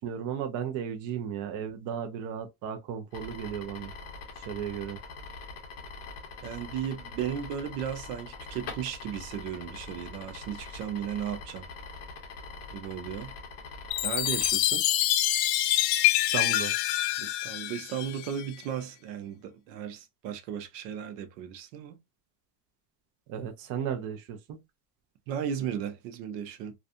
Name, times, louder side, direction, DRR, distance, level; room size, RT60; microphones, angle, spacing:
voice 1, 0.0-3.9 4.4-5.0 16.3-16.7 23.3-24.6, right 8 dB, 40° right, 0.5 m, -35 dB
sound 1, 3.1-14.5, left 4 dB, 30° left, 0.6 m, -43 dB
voice 2, 6.4-11.7 12.7-13.3 14.0-14.9 17.2-22.0 25.3-26.7, right 9 dB, 80° right, 0.8 m, -35 dB
Chime, 13.9-18.4, left 14 dB, 90° left, 0.6 m, -26 dB
2.5 x 2.4 x 2.4 m
supercardioid pair, 150°, 48 cm